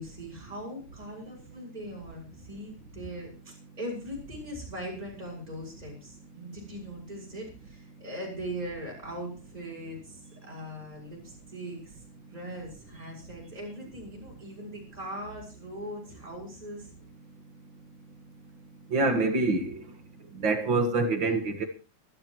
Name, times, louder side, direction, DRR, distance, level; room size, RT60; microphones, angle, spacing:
voice 1, 0.0-12.0 12.3-16.9, equal, 10° right, 6.2 m, -40 dB
voice 2, 18.9-19.8 20.4-21.7, right 3 dB, 45° right, 1.8 m, -25 dB
24.5 x 12.0 x 3.1 m
omnidirectional pair, 3.9 m